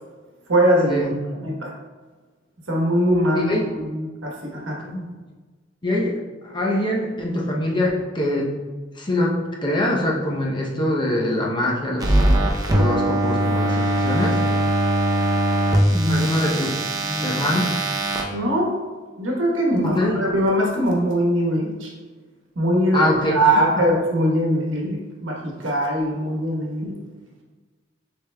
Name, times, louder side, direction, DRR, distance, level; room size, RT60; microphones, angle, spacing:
voice 1, 0.5-1.0 1.4-1.7 2.7-4.8 15.9-16.2 17.0-17.4 18.3-18.7 19.2-21.9 22.5-26.9, equal, 80° right, -2 dB, 1.1 m, -22 dB
voice 2, 5.8-6.2 6.4-8.5 9.0-12.2 12.7-14.4 16.1-16.8 17.2-17.8 19.9-20.2 22.9-23.4, left 1 dB, 25° left, -2 dB, 0.6 m, -23 dB
sound 1, 12.0-18.2, right 1 dB, 20° right, 0.5 m, -21 dB
6.6 x 3.4 x 2.2 m, 1.4 s
head